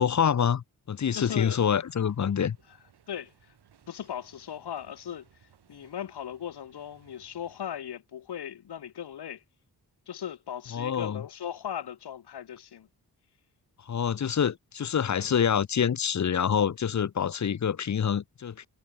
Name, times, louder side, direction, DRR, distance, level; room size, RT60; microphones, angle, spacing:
voice 1, 0.0-2.6 10.7-11.2 13.9-18.7, left 8 dB, 45° left, 0.8 m, -26 dB
sound 1, 1.0-7.7, right 8 dB, 85° right, 4.6 m, -62 dB
voice 2, 1.1-1.6 2.2-2.3 3.1-3.5 3.9-5.2 5.7-9.4 10.1-12.9, left 9 dB, 90° left, 2.1 m, -38 dB
wide cardioid pair, 100°, 38 cm